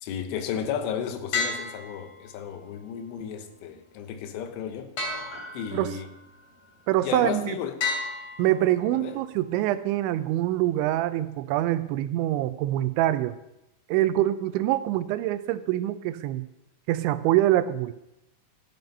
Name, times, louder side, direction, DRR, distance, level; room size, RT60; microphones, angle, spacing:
voice 1, 0.0-4.9 5.5-6.1 7.0-7.8 8.9-9.2, left 8 dB, 85° left, 3.6 m, -33 dB
sound 1, 1.3-2.6 5.0-6.0 7.8-9.0, left 4 dB, 40° left, 3.3 m, -32 dB
Piano, 5.3-9.9 10.2-10.3, equal, 15° left, 5.9 m, -51 dB
voice 2, 6.9-7.6 8.4-13.4 13.9-16.4 16.9-17.9, right 14 dB, 80° right, 2.9 m, -25 dB
14.0 x 11.0 x 5.4 m
omnidirectional pair, 5.5 m